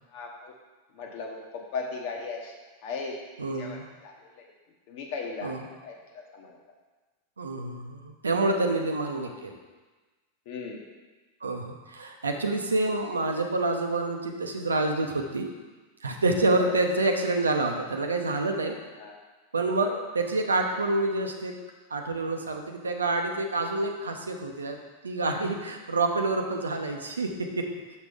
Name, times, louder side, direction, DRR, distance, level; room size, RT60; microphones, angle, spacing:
voice 1, 0.1-0.5 1.0-2.5 2.8-3.1 3.6-4.5 4.9-6.6 8.9-9.0 10.5-10.8 16.6-16.8 19.0-19.2 19.8-20.0, left 4 dB, 50° left, 1 dB, 1.2 m, -37 dB
voice 2, 3.4-3.8 5.4-5.7 7.4-9.6 11.4-15.5 16.0-18.8 19.5-21.5 21.9-24.8 25.0-27.7, right 2 dB, 75° right, 4 dB, 0.7 m, -27 dB
6.9 x 6.4 x 3.6 m, 1.3 s
figure-of-eight pair, 90°, 0 cm